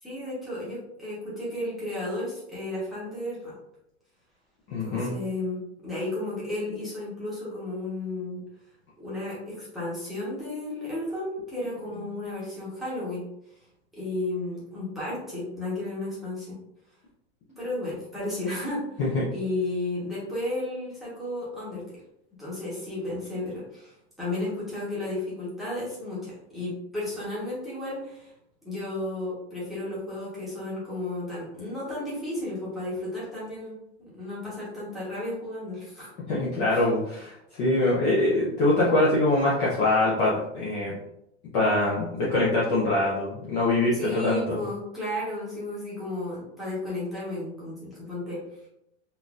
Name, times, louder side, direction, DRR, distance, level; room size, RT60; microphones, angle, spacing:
voice 1, 0.0-3.5 4.8-8.4 9.0-13.2 13.9-16.6 17.6-18.8 19.3-21.8 22.4-28.3 28.6-33.8 34.2-36.1 36.7-36.9 43.9-48.4, left 1 dB, ahead, -10 dB, 1.0 m, -33 dB
voice 2, 4.7-5.1 19.0-19.3 36.3-41.0 41.5-44.6, left 2 dB, 30° left, -6 dB, 0.6 m, -24 dB
3.8 x 2.6 x 2.4 m, 0.81 s
supercardioid pair, 160°, 33 cm